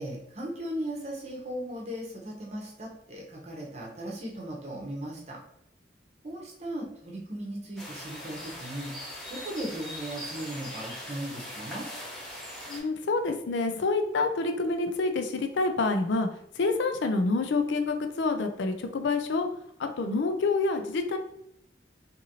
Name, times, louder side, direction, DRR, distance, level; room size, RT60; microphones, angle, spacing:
voice 1, 0.0-5.4 6.2-8.9 9.3-11.9, right 1 dB, 35° right, -2 dB, 0.7 m, -37 dB
sound 1, 7.8-12.8, equal, ahead, 0.7 m, -40 dB
voice 2, 12.7-16.3 16.6-19.5 19.8-21.2, left 3 dB, 70° left, 6 dB, 0.4 m, -27 dB
2.7 x 2.6 x 2.8 m, 0.74 s
head